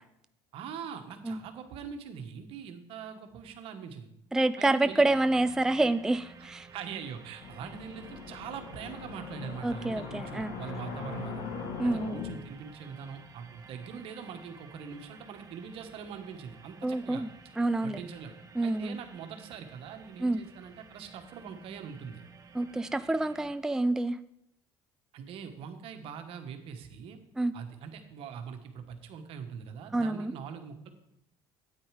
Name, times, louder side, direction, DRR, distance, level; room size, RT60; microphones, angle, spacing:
voice 1, 0.5-4.1 4.6-5.0 6.4-6.5 6.7-11.4 11.8-17.2 17.8-18.3 18.6-22.2 25.1-27.2 27.5-30.9, right 7 dB, 65° right, 7 dB, 1.4 m, -42 dB
voice 2, 4.3-6.7 9.6-10.5 11.8-12.2 16.8-17.3 17.6-18.0 18.6-19.0 20.2-20.4 22.5-24.2 27.4-27.5 29.9-30.3, right 2 dB, 5° right, 12 dB, 0.4 m, -28 dB
sound 1, 4.9-23.6, right 5 dB, 35° right, 1.1 m, -53 dB
sound 2, 7.4-12.4, left 6 dB, 70° left, 1.5 m, -40 dB
8.9 x 8.7 x 5.0 m, 0.78 s
supercardioid pair, 80°, 10 cm